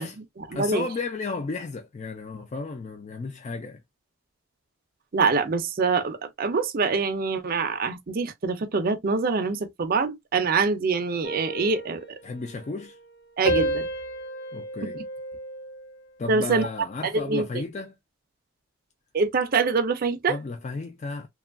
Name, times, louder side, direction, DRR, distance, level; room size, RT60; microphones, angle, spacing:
voice 1, 0.0-0.9 5.1-12.0 13.4-13.9 14.8-14.9 16.3-16.7 17.0-17.6 19.1-20.4, right 4 dB, 45° right, 0.5 m, -25 dB
voice 2, 0.5-3.8 12.2-13.0 14.5-15.0 16.2-17.9 20.3-21.3, left 3 dB, 35° left, 0.3 m, -33 dB
sound 1, 11.2-13.1 13.4-16.0 16.5-16.8, right 1 dB, 50° left, 0.8 m, -32 dB
2.9 x 2.3 x 2.4 m
head